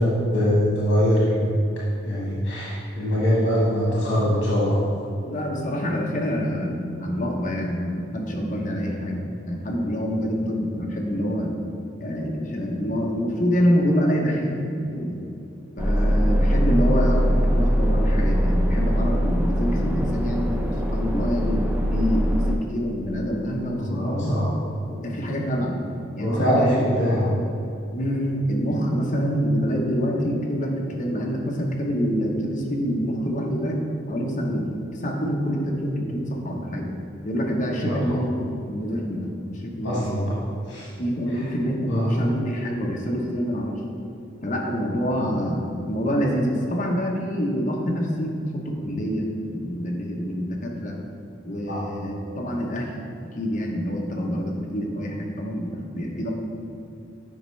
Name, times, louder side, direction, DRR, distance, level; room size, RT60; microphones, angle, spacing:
voice 1, 0.0-1.6 2.0-4.8 23.8-24.5 26.2-27.3 37.8-38.2 39.8-40.4 40.7-40.9 41.9-42.2 51.6-51.8, equal, 80° left, -7 dB, 1.6 m, -23 dB
voice 2, 5.2-11.5 12.0-15.3 15.8-20.5 20.9-21.6 21.9-24.3 24.9-25.8 26.2-27.0 27.9-36.9 37.2-40.1 41.0-43.8 44.4-51.0 51.4-52.9 53.3-56.3, equal, 40° left, -1 dB, 0.9 m, -26 dB
sound 1, 15.8-22.6, equal, 10° right, 0.5 m, -22 dB
8.7 x 5.2 x 3.2 m, 2.6 s
head